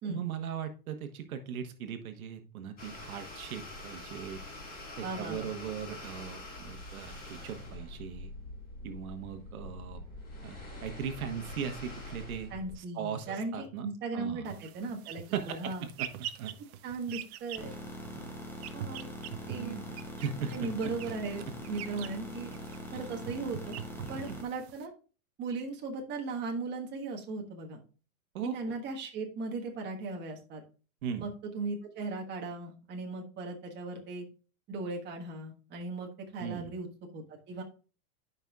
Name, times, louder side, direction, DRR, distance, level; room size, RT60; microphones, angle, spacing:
voice 1, 0.0-4.4 5.0-8.3 8.8-10.0 10.4-12.5 12.8-13.9 14.1-14.4 15.3-15.6 16.0-16.1 16.4-16.5 18.1-18.3 19.6-20.7 24.3-24.4 28.3-28.6 31.0-31.2 36.4-36.7, right 7 dB, 70° right, 7 dB, 1.3 m, -38 dB
sound 1, 2.8-12.8, left 2 dB, 20° left, 4.3 m, -45 dB
voice 2, 5.0-5.5 12.5-15.9 16.8-17.7 18.7-19.1 19.5-19.8 20.5-22.5 22.9-23.8 24.1-24.9 25.4-27.8 28.5-30.6 31.2-34.2 34.7-36.9 37.1-37.6, right 3 dB, 25° right, 0 dB, 1.4 m, -37 dB
sound 2, 14.5-24.9, right 10 dB, 45° right, 0.7 m, -44 dB
sound 3, 17.6-24.4, left 1 dB, 5° left, 0.7 m, -43 dB
12.0 x 5.5 x 2.4 m, 0.37 s
hypercardioid pair, 140°, 43 cm